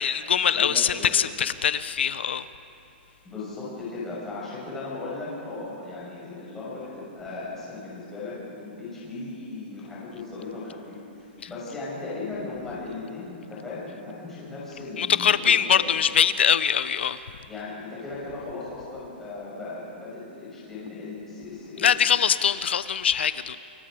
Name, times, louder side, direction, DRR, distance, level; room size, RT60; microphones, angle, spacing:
voice 1, 0.0-2.5 15.0-17.2 21.8-23.6, left 8 dB, 80° left, 14 dB, 0.8 m, -22 dB
voice 2, 0.5-1.1 3.2-15.9 17.5-21.9, left 3 dB, 5° left, -8 dB, 5.9 m, -37 dB
28.0 x 24.5 x 5.1 m, 2.7 s
hypercardioid pair, 180°, 6 cm